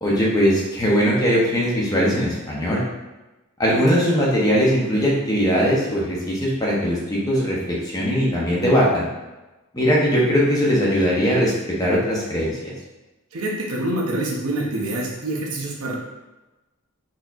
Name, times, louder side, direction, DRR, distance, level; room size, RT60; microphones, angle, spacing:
voice 1, 0.0-2.8 3.6-9.0 9.7-11.5 11.8-12.7, equal, 15° left, -5 dB, 0.6 m, -20 dB
voice 2, 13.3-16.0, right 1 dB, 75° right, -3 dB, 0.6 m, -26 dB
4.0 x 2.7 x 2.3 m, 1.1 s
head